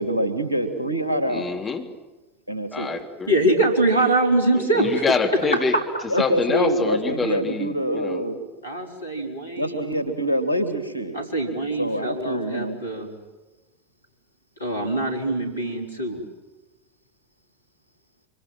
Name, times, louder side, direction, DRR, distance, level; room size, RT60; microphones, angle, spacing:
voice 1, 0.0-1.6 2.5-2.9 6.1-8.4 9.6-11.2 11.8-12.8, right 1 dB, 85° right, 7 dB, 2.9 m, -25 dB
voice 2, 1.3-1.9 2.7-3.3 4.6-5.8 6.2-8.2, left 5 dB, 25° left, 3 dB, 3.3 m, -26 dB
voice 3, 3.3-5.1 5.7-5.8 8.6-10.0 11.1-13.1 14.6-16.2, right 2 dB, 80° left, 3 dB, 4.4 m, -23 dB
26.0 x 25.5 x 7.7 m, 1.1 s
figure-of-eight pair, 80°, 0 cm